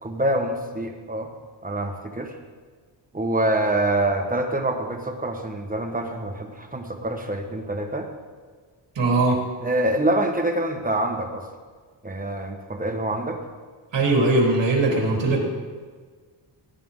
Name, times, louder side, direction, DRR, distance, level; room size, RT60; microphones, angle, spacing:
voice 1, 0.0-1.3 1.6-2.3 3.1-8.1 9.6-11.4 12.0-13.4, right 1 dB, 20° right, 3 dB, 1.3 m, -25 dB
voice 2, 9.0-9.4 13.9-15.4, right 2 dB, 70° right, -2 dB, 3.8 m, -20 dB
16.5 x 10.5 x 3.8 m, 1.5 s
wide cardioid pair, 130°, 45 cm